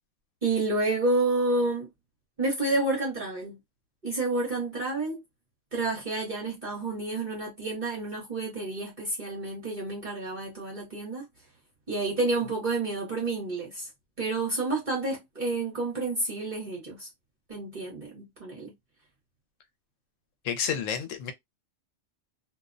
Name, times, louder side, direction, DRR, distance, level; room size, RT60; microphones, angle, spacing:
voice 1, 0.4-1.9 2.4-3.6 4.0-5.2 5.7-11.3 11.9-13.9 14.2-17.1 17.5-18.7, right 2 dB, 45° right, 0.9 m, -29 dB
voice 2, 20.4-21.3, left 7 dB, 85° left, 1.0 m, -30 dB
2.4 x 2.1 x 2.4 m
omnidirectional pair, 1.3 m